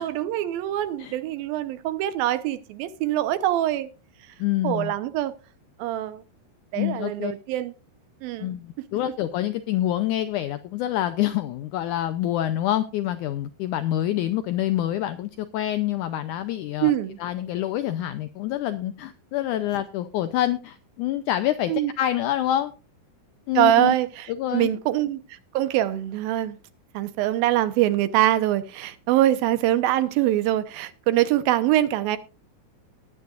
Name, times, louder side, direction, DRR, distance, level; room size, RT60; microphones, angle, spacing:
voice 1, 0.0-3.9 4.6-5.3 5.8-6.2 6.7-7.7 8.2-8.5 16.8-17.2 21.7-21.9 23.6-25.2 25.5-26.6 26.9-32.2, right 13 dB, 75° right, 2.7 m, -23 dB
voice 2, 4.4-4.9 6.8-7.3 8.4-16.9 17.2-22.7 23.5-24.0 24.3-24.7, left 13 dB, 85° left, 1.8 m, -26 dB
20.0 x 9.4 x 2.5 m
omnidirectional pair, 4.3 m